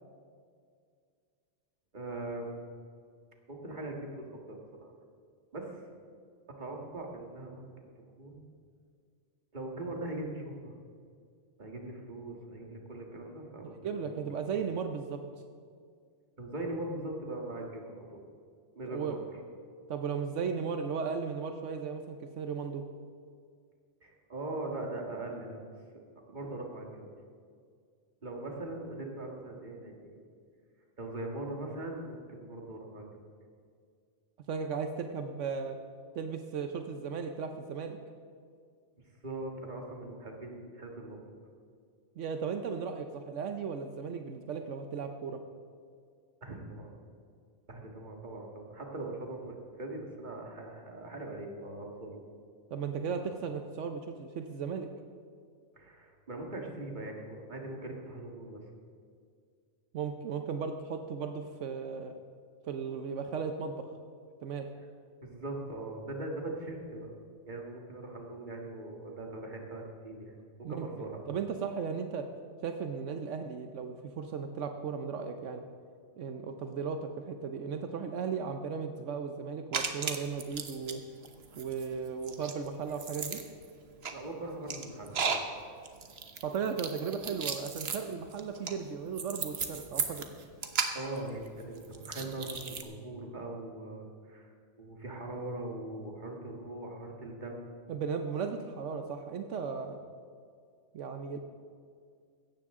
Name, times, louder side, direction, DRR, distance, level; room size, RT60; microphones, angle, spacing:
voice 1, 1.9-2.5 3.5-4.9 5.5-5.8 6.6-7.7 8.2-8.5 9.5-10.7 11.6-14.2 16.4-18.2 18.8-19.1 24.0-25.7 26.3-27.1 28.2-30.2 31.0-33.2 39.2-41.2 46.4-47.0 47.7-52.2 55.8-58.6 65.2-67.1 67.5-71.3 84.1-85.3 90.9-94.5 94.8-97.7, right 2 dB, 40° right, 1 dB, 1.9 m, -41 dB
voice 2, 13.6-15.2 18.9-19.3 19.9-22.8 34.5-35.8 36.1-38.0 42.2-45.4 52.7-54.9 59.9-62.1 62.7-63.9 64.4-64.7 70.6-72.3 72.6-75.6 76.2-81.0 81.6-83.4 86.4-90.3 97.9-100.0 100.9-101.4, right 6 dB, 85° right, 6 dB, 1.1 m, -36 dB
sound 1, 79.7-80.9 81.2-92.8, right 5 dB, 60° right, 1.2 m, -36 dB
16.5 x 13.5 x 3.7 m, 2.1 s
omnidirectional pair, 1.2 m